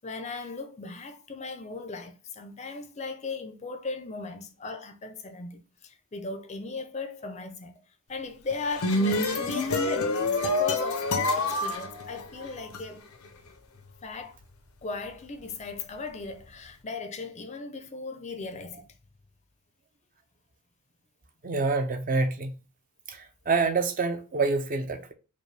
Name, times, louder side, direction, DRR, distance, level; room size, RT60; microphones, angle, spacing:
voice 1, 0.0-7.7 8.1-13.0 14.0-14.4 14.8-18.9, left 3 dB, 30° left, 0.5 m, -37 dB
sound 1, 8.5-12.8, left 2 dB, 85° left, 0.7 m, -27 dB
voice 2, 21.4-22.5 23.1-23.2 23.5-25.1, right 3 dB, 40° right, 0.5 m, -26 dB
5.2 x 2.2 x 3.2 m
head